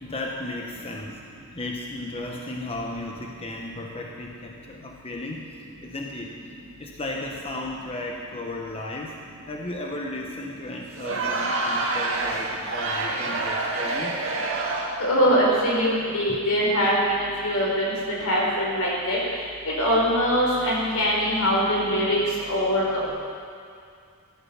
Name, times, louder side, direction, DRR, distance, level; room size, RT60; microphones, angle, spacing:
voice 1, 0.0-1.2 1.5-9.2 9.5-14.2 16.2-16.4, left 2 dB, 25° left, 0 dB, 1.1 m, -35 dB
Crowd, 10.9-15.1, right 2 dB, 65° right, 2.1 m, -27 dB
voice 2, 15.0-17.9 18.2-19.2 19.8-22.2 22.5-23.1, equal, 85° left, -4 dB, 4.8 m, -22 dB
16.0 x 12.0 x 5.9 m, 2.3 s
head